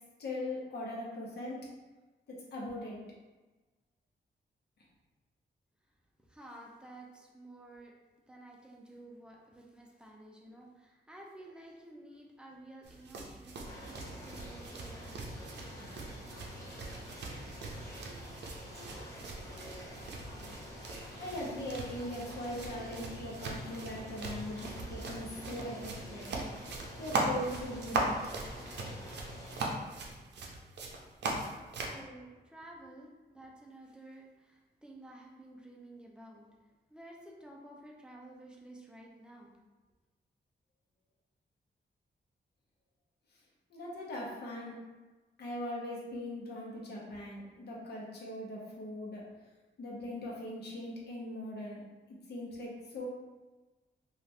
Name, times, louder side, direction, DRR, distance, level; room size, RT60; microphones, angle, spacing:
voice 1, 0.2-1.7 2.3-3.0 21.2-26.3 27.0-28.2 43.7-44.8 45.4-49.3 49.8-53.0, left 1 dB, 70° left, -4 dB, 0.8 m, -40 dB
voice 2, 6.2-7.9 8.3-15.9 31.5-39.5, right 1 dB, 5° right, -2 dB, 0.4 m, -52 dB
sound 1, 12.8-32.0, right 2 dB, 85° right, 0.5 m, -40 dB
sound 2, 13.6-29.7, equal, 20° left, 0.8 m, -47 dB
2.7 x 2.4 x 3.2 m, 1.2 s
wide cardioid pair, 145°, 17 cm